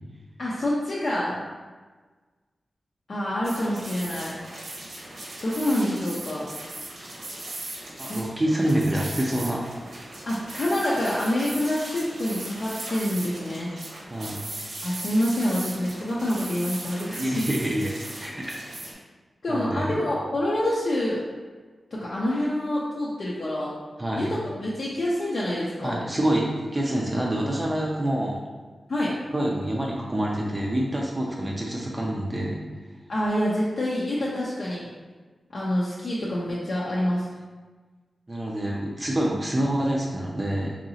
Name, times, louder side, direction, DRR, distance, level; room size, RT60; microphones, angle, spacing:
voice 1, 0.4-1.4 3.1-4.3 5.4-6.5 8.1-8.2 10.3-13.7 14.8-17.5 19.4-21.2 21.9-23.8 24.2-26.0 28.9-29.1 33.1-34.9 35.5-37.3, left 1 dB, 55° left, -6 dB, 0.5 m, -27 dB
sound 1, 3.4-18.9, right 1 dB, 85° right, 0.9 m, -38 dB
voice 2, 8.0-9.7 14.1-14.8 17.2-18.5 19.5-19.9 24.0-24.3 25.8-28.4 29.3-32.6 38.3-40.8, right 1 dB, 20° right, -3 dB, 0.4 m, -27 dB
3.9 x 2.8 x 2.7 m, 1.4 s
wide cardioid pair, 110°, 0 cm